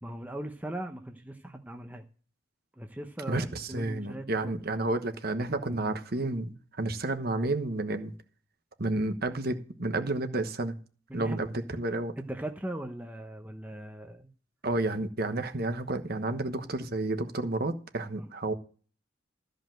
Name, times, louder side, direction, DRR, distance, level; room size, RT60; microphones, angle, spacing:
voice 1, 0.0-2.0 2.7-4.5 11.1-11.4 12.2-14.3 18.1-18.3, right 1 dB, 10° right, 4 dB, 0.8 m, -39 dB
voice 2, 3.3-8.1 8.8-10.7 11.1-12.1 14.6-18.5, right 2 dB, 50° right, 8 dB, 1.2 m, -31 dB
13.5 x 5.2 x 7.6 m, 0.40 s
head